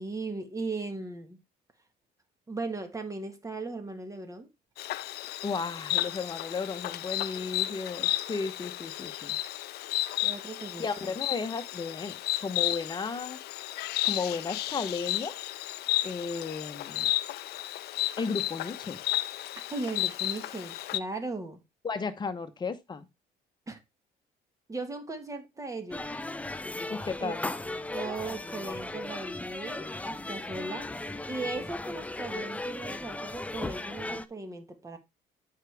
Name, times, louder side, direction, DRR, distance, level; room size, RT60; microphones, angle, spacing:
voice 1, 0.0-1.4 2.5-4.5 10.2-11.2 19.7-21.6 23.7-23.8 24.7-26.1 27.2-27.3 27.9-35.0, right 3 dB, 20° right, 1.6 m, -37 dB
Insect, 4.8-21.0, left 14 dB, 70° left, 0.5 m, -33 dB
voice 2, 5.4-9.4 10.8-13.4 14.0-15.3 16.0-17.1 18.2-19.0 21.8-23.1 26.9-27.5, left 4 dB, 25° left, 1.1 m, -34 dB
sound 1, 25.9-34.3, left 2 dB, 10° left, 0.4 m, -36 dB
8.9 x 4.8 x 3.5 m
cardioid pair, 110°, 17 cm